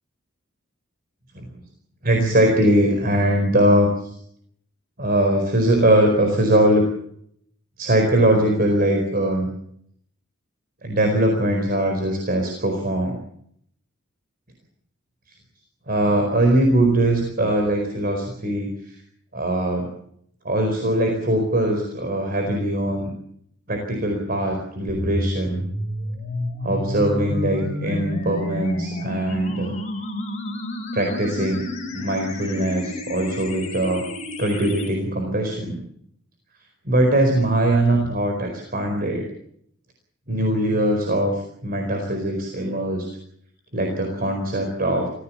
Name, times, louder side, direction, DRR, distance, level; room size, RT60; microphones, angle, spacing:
voice 1, 2.0-4.1 5.0-6.9 7.8-9.5 10.8-13.2 15.9-19.0 19.3-19.9 20.4-23.1 23.7-25.6 26.6-29.7 30.9-34.1 34.4-35.8 36.8-39.3 40.3-43.1 43.7-45.1, right 1 dB, 45° right, 3 dB, 4.5 m, -21 dB
sound 1, 24.9-34.9, left 1 dB, 35° left, 6.9 m, -30 dB
26.0 x 16.5 x 7.3 m, 0.68 s
head